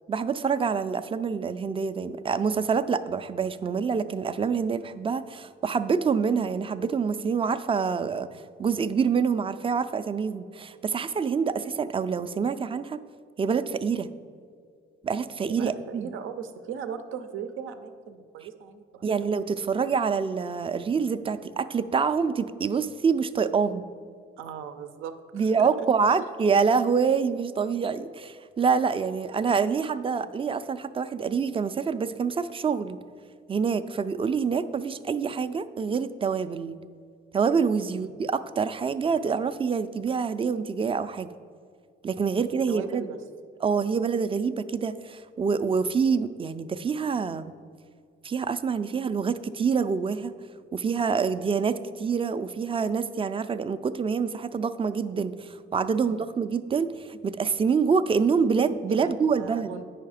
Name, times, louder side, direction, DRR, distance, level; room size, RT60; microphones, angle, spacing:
voice 1, 0.1-8.3 8.6-13.0 13.4-14.1 15.0-16.1 19.0-23.9 25.3-33.0 33.5-36.8 37.3-41.3 42.0-43.1 43.6-47.5 48.2-50.3 50.7-59.7, right 5 dB, 25° right, 12 dB, 0.4 m, -26 dB
voice 2, 15.5-19.3 24.4-26.3 37.9-38.1 42.7-43.2 56.0-56.3 58.9-59.8, right 7 dB, 85° right, 9 dB, 0.6 m, -39 dB
8.6 x 5.6 x 4.9 m, 2.2 s
cardioid pair, 90°, 20 cm